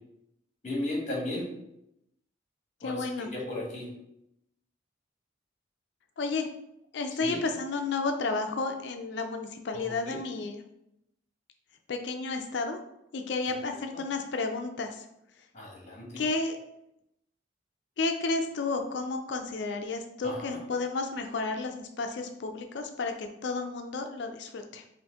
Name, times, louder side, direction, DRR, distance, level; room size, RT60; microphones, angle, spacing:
voice 1, 0.6-1.4 2.8-3.9 7.2-7.4 9.7-10.2 15.5-16.0 20.2-20.6, left 1 dB, 40° left, -2 dB, 1.2 m, -35 dB
voice 2, 2.8-3.3 6.2-6.5 6.9-10.6 11.9-12.8 13.1-15.0 16.2-16.6 18.0-24.8, left 3 dB, 65° left, 5 dB, 0.4 m, -32 dB
5.2 x 2.5 x 3.5 m, 0.82 s
head